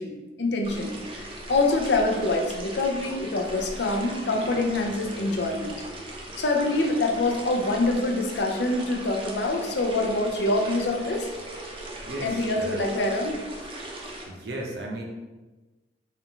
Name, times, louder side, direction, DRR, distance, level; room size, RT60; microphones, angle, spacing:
voice 1, 0.0-5.8 6.4-11.3 12.2-13.4, left 2 dB, 70° left, 2 dB, 0.6 m, -25 dB
sound 1, 0.6-14.3, right 1 dB, 30° right, 0.6 m, -39 dB
voice 2, 12.0-12.9 14.3-15.0, right 1 dB, 65° right, 0 dB, 0.7 m, -35 dB
4.4 x 2.4 x 3.6 m, 1.2 s
head